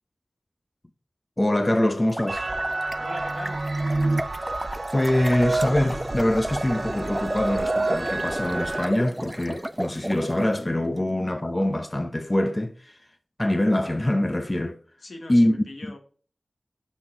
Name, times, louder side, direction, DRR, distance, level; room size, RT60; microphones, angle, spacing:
voice 1, 1.4-2.5 4.9-12.9 13.4-14.8 15.3-15.5, left 1 dB, 25° left, 0.7 m, -24 dB
sound 1, 2.0-10.5, right 1 dB, 15° right, 0.5 m, -33 dB
sound 2, 2.3-8.9, right 2 dB, 50° right, 0.6 m, -29 dB
voice 2, 3.0-3.6 15.0-16.0, left 2 dB, 85° left, 1.6 m, -40 dB
6.2 x 5.7 x 3.8 m
wide cardioid pair, 60°, 0 cm